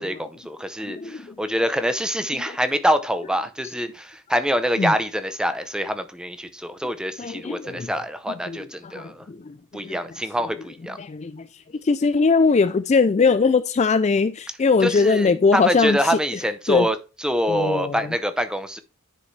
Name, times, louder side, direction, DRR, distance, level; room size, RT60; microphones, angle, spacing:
voice 1, 0.0-9.2 9.7-11.0 14.8-18.8, equal, 5° right, 0.6 m, -25 dB
voice 2, 0.8-1.4 2.4-2.6 4.8-4.9 7.2-7.9 8.3-10.0 11.0-16.2 16.7-16.9 17.5-18.1, left 4 dB, 30° left, 0.3 m, -21 dB
9.8 x 5.3 x 3.2 m
head